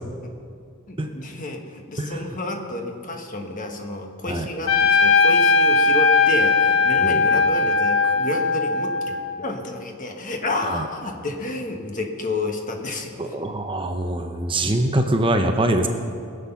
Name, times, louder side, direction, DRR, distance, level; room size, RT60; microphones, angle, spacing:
voice 1, 0.9-13.3, left 2 dB, 40° left, 3 dB, 1.3 m, -30 dB
Trumpet, 4.7-9.4, left 4 dB, 75° left, 1.0 m, -18 dB
voice 2, 13.2-15.9, right 1 dB, 25° right, 5 dB, 0.8 m, -23 dB
20.5 x 8.0 x 5.7 m, 2.3 s
head